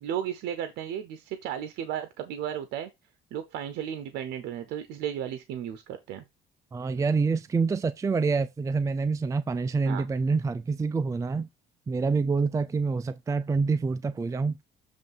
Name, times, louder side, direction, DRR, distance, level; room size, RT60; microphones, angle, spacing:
voice 1, 0.0-2.9 3.3-6.2 9.8-10.1, right 10 dB, 85° right, 0.8 m, -34 dB
voice 2, 6.7-11.5 11.9-14.6, right 4 dB, 20° right, 0.4 m, -27 dB
7.5 x 3.2 x 5.5 m
cardioid pair, 110°, 17 cm